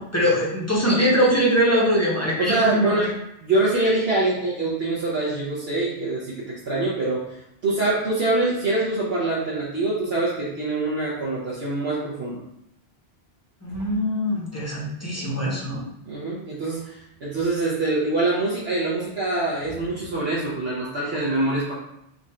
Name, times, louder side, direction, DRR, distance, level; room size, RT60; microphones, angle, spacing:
voice 1, 0.0-3.1 13.6-15.9, equal, 15° left, -5 dB, 0.8 m, -22 dB
voice 2, 2.4-3.1 3.4-12.4 16.1-21.7, right 2 dB, 65° right, -7 dB, 1.1 m, -24 dB
3.8 x 2.5 x 4.2 m, 0.80 s
omnidirectional pair, 1.1 m